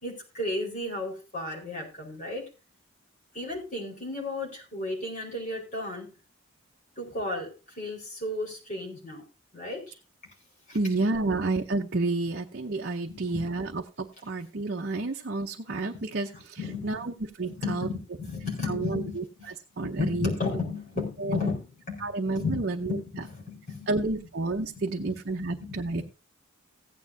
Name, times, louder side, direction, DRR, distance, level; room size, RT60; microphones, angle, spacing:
voice 1, 0.0-2.5 3.3-6.1 7.0-9.2 9.5-10.0 10.7-11.3 13.1-13.4 16.3-17.1 17.5-19.5 19.8-24.2 24.6-26.0, left 3 dB, 35° left, -2 dB, 4.7 m, -34 dB
voice 2, 10.7-16.6 16.8-17.1 17.4-17.9 18.7-19.2 19.8-20.3 21.2-21.4 22.0-22.9 23.9-26.0, right 2 dB, 50° right, 2 dB, 0.7 m, -30 dB
16.0 x 9.4 x 2.7 m, 0.30 s
head